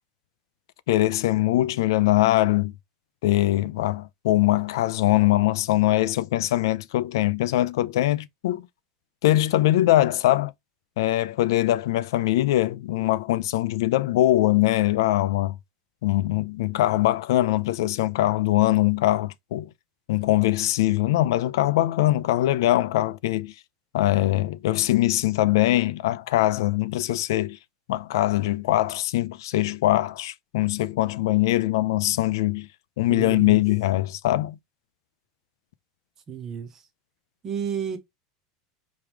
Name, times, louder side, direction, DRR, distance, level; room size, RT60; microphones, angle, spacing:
voice 1, 0.9-2.7 3.2-8.6 9.2-10.5 11.0-15.6 16.0-19.7 20.1-23.5 23.9-27.6 27.9-32.7 33.0-34.6, left 15 dB, 85° left, 0.5 m, -22 dB
voice 2, 33.1-33.6 36.3-36.8 37.4-38.0, right 7 dB, 20° right, 0.7 m, -31 dB
4.8 x 3.1 x 3.4 m
supercardioid pair, 175°, 2 cm